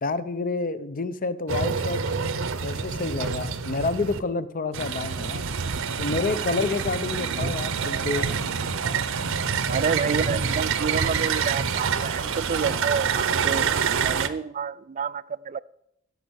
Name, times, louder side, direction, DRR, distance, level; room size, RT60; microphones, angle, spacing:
voice 1, 0.0-2.0 2.6-5.4 6.0-8.3, left 3 dB, 40° left, 14 dB, 0.6 m, -28 dB
sound 1, 1.5-4.2 4.7-14.3, right 6 dB, 60° right, 0.8 m, -27 dB
voice 2, 9.7-13.7 14.0-15.6, right 6 dB, 35° right, 19 dB, 0.3 m, -29 dB
16.0 x 6.4 x 6.3 m, 0.77 s
head